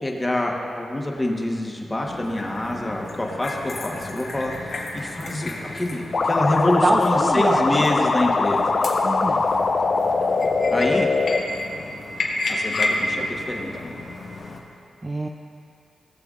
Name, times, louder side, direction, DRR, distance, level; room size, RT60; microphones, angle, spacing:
voice 1, 0.0-8.8 10.7-11.1 12.5-13.7, left 1 dB, 20° left, 0 dB, 1.2 m, -26 dB
sound 1, 2.0-14.6, left 2 dB, 65° left, 1.3 m, -31 dB
sound 2, 6.1-11.4, left 3 dB, 45° left, 0.4 m, -21 dB
voice 2, 6.8-7.9 9.0-9.4 15.0-15.3, right 2 dB, 25° right, 2 dB, 0.4 m, -24 dB
18.0 x 6.8 x 2.5 m, 2.6 s
cardioid pair, 80°, 0 cm